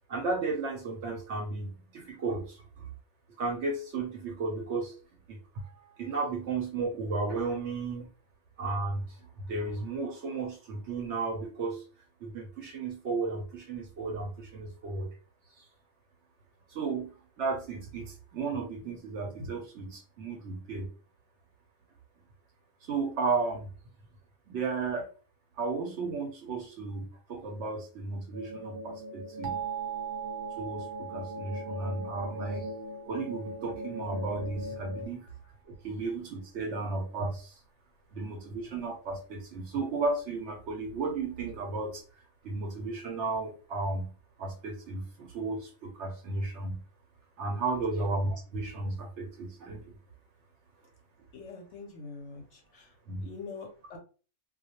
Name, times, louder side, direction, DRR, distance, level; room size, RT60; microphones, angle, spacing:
voice 1, 0.1-2.9 3.4-4.9 5.3-5.7 6.0-8.1 8.6-11.8 12.2-15.1 15.6-15.7 16.7-20.9 22.8-23.7 24.5-25.1 25.6-29.6 30.6-32.7 33.1-35.3 35.7-37.6 38.1-44.1 44.4-46.8 47.4-49.9 53.1-53.3, right 3 dB, 65° right, 2 dB, 0.8 m, -34 dB
sound 1, 28.3-35.1, left 1 dB, 20° right, 0.7 m, -40 dB
sound 2, 29.4-34.1, right 11 dB, 90° right, 1.1 m, -40 dB
voice 2, 51.3-53.0 53.2-54.0, left 4 dB, 65° left, 3 dB, 0.8 m, -44 dB
2.3 x 2.0 x 2.8 m, 0.37 s
omnidirectional pair, 1.5 m